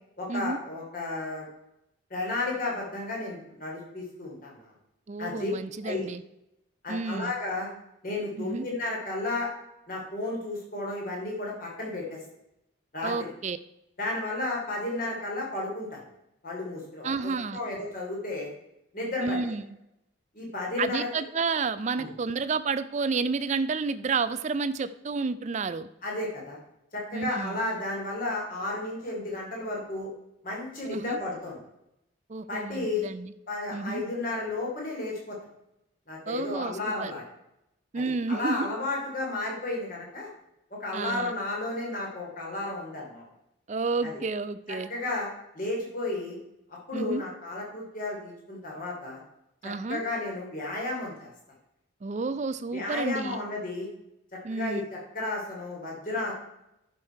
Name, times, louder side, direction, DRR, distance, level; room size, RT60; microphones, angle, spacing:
voice 1, 0.2-1.5 2.1-4.7 5.2-5.5 5.8-6.1 6.8-7.7 8.0-9.5 9.9-12.2 12.9-13.3 14.0-16.0 16.4-17.1 17.5-18.5 18.9-19.4 20.3-21.1 22.0-22.1 26.0-26.6 26.9-30.1 30.4-31.6 32.5-33.1 33.5-35.4 36.1-37.2 37.9-40.3 40.8-43.2 44.0-44.1 44.7-46.4 46.9-49.2 49.9-51.3 52.7-53.9 54.5-56.3, left 2 dB, 40° left, -2 dB, 3.0 m, -33 dB
voice 2, 5.1-6.2 6.9-7.3 8.4-8.7 13.0-13.6 17.0-17.6 19.2-19.6 20.8-25.9 27.1-27.6 30.9-31.2 32.3-33.3 33.7-34.0 36.3-37.1 37.9-38.7 40.9-41.3 43.7-44.9 46.9-47.2 49.6-50.0 52.0-53.4 54.4-54.9, right 4 dB, 35° right, 13 dB, 0.4 m, -30 dB
11.0 x 6.2 x 4.5 m, 0.84 s
head